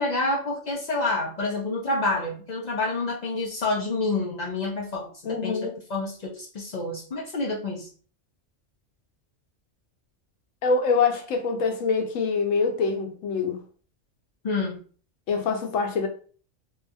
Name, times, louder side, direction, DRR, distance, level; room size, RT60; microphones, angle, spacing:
voice 1, 0.0-7.9 14.4-14.8, left 2 dB, 60° left, 0.4 m, -28 dB
voice 2, 5.2-5.8 10.6-13.6 15.3-16.1, left 4 dB, 90° left, 1.0 m, -25 dB
2.7 x 2.4 x 2.5 m
omnidirectional pair, 1.3 m